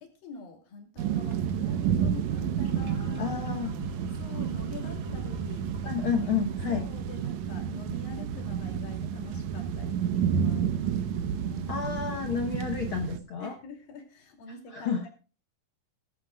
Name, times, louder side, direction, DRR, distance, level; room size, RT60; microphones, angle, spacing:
voice 1, 0.0-3.8 4.2-5.7 6.7-12.0 13.4-15.1, left 3 dB, 85° left, 4 dB, 4.5 m, -45 dB
sound 1, 1.0-13.2, right 8 dB, 70° right, 1.9 m, -30 dB
sound 2, 1.1-1.5 2.3-7.3, equal, 90° right, 0.6 m, -42 dB
voice 2, 3.2-3.7 5.8-6.9 11.7-13.5 14.7-15.0, left 6 dB, 55° left, 4 dB, 1.6 m, -30 dB
20.0 x 11.5 x 2.3 m, 0.35 s
omnidirectional pair, 4.0 m